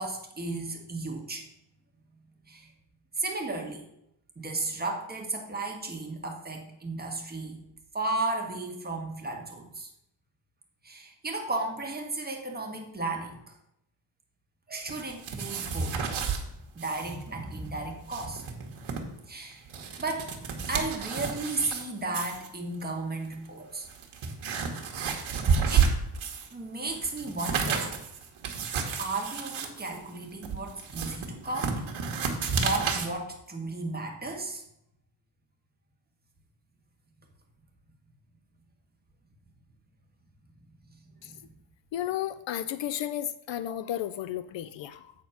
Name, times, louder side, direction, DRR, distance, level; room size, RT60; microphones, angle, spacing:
voice 1, 0.0-1.4 2.5-2.7 3.2-3.8 4.3-7.5 7.9-9.9 10.8-13.5 14.7-16.0 16.7-18.4 19.3-19.7 20.0-20.3 20.7-23.9 25.0-25.4 25.7-25.9 26.5-28.0 29.0-31.9 32.6-34.6 41.3-41.4, right 2 dB, 20° right, 1 dB, 1.6 m, -34 dB
sound 1, 14.9-16.4 16.8-17.1 17.4-17.5 17.9-19.0 19.5-21.8 22.1-22.5 23.2-23.3 23.8-26.5 26.9-33.1, right 6 dB, 65° right, 1.5 m, -30 dB
voice 2, 41.9-45.1, left 11 dB, 65° left, 14 dB, 0.5 m, -33 dB
8.4 x 4.3 x 5.7 m, 0.80 s
cardioid pair, 110°, 50 cm